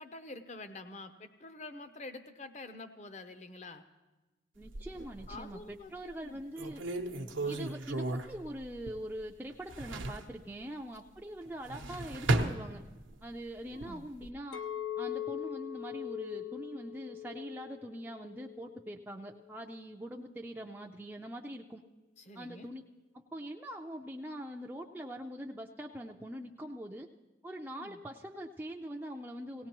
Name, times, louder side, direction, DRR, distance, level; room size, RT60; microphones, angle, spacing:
voice 1, 0.0-3.8 5.3-6.4 7.4-7.6 13.7-14.1 22.2-22.7 27.8-28.0, left 2 dB, 35° left, 9 dB, 0.7 m, -47 dB
voice 2, 4.6-6.8 7.5-12.8 13.2-14.6 15.0-21.8 22.3-22.8 23.1-27.1 27.4-29.7, equal, 10° right, 0 dB, 0.4 m, -43 dB
sound 1, 4.6-5.6 6.1-6.2 6.6-9.2 9.5-10.3 11.5-13.2 13.7-14.3, right 2 dB, 85° right, 0.8 m, -35 dB
Chink clink, 14.5-18.8 19.3-19.7, left 11 dB, 85° left, 0.6 m, -41 dB
17.5 x 17.5 x 3.0 m, 1.1 s
head